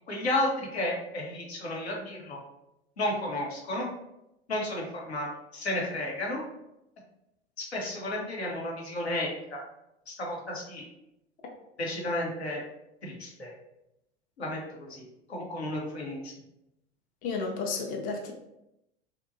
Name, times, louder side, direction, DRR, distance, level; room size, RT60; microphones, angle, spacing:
voice 1, 0.1-2.4 3.0-3.9 4.5-5.3 5.5-6.4 7.6-9.6 10.1-10.8 11.8-12.6 13.0-13.5 14.4-15.0 15.3-16.3, left 1 dB, 80° left, -2 dB, 0.8 m, -32 dB
voice 2, 17.2-18.3, left 4 dB, 25° left, 1 dB, 0.4 m, -32 dB
2.8 x 2.1 x 2.5 m, 0.87 s
figure-of-eight pair, 80°, 32 cm